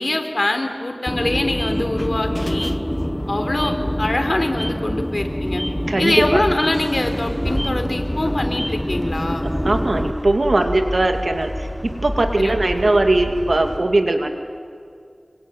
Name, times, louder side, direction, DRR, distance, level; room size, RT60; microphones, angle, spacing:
voice 1, 0.0-2.7 3.3-5.6 6.0-9.5 12.4-12.8, left 1 dB, 55° left, 5 dB, 3.7 m, -24 dB
sound 1, 1.1-10.1, equal, 10° left, 0.9 m, -25 dB
voice 2, 5.9-6.4 9.4-11.5 11.8-14.3, right 2 dB, 70° right, 5 dB, 2.4 m, -19 dB
sound 2, 6.7-13.8, equal, 15° right, 5.4 m, -30 dB
27.0 x 24.0 x 9.0 m, 2.3 s
wide cardioid pair, 45°, 0 cm